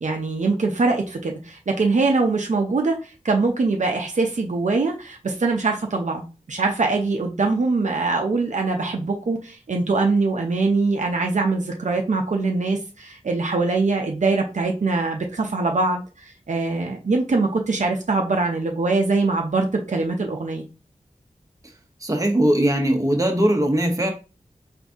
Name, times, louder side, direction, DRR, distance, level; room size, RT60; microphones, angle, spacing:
voice 1, 0.0-6.2 6.5-20.6, right 3 dB, 65° right, 2 dB, 0.6 m, -23 dB
voice 2, 22.0-24.1, right 1 dB, 25° right, 3 dB, 0.9 m, -20 dB
3.9 x 2.6 x 3.5 m, 0.32 s
wide cardioid pair, 75°, 13 cm